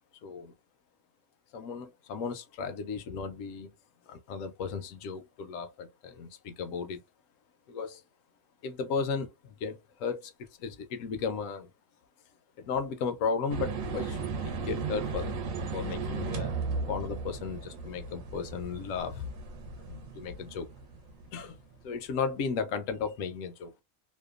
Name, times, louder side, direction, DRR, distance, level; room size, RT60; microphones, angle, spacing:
voice 1, 0.2-0.5 1.5-3.7 4.1-7.0 7.7-8.0 8.6-10.3 10.6-11.7 12.6-15.4 15.7-16.5 16.9-19.3 19.8-20.7 21.3-21.6 21.8-23.7, left 5 dB, 75° left, 0.9 m, -35 dB
sound 1, 13.5-21.6, right 4 dB, 75° right, 1.0 m, -36 dB
2.8 x 2.2 x 2.3 m
omnidirectional pair, 1.4 m